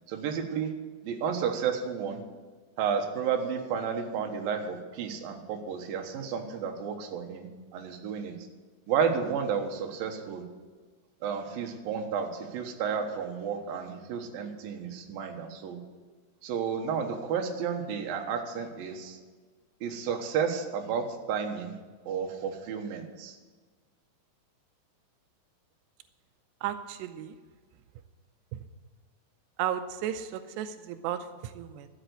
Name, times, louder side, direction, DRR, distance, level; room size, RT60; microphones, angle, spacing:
voice 1, 0.1-0.7 1.0-2.2 2.8-7.5 7.7-8.3 8.9-10.4 11.2-15.8 16.4-19.2 19.8-21.7 22.1-23.4, right 7 dB, 65° right, 3 dB, 2.7 m, -32 dB
voice 2, 26.6-27.3 28.5-28.6 29.6-31.9, right 10 dB, 90° right, 9 dB, 2.8 m, -34 dB
12.5 x 8.1 x 7.9 m, 1.4 s
omnidirectional pair, 4.8 m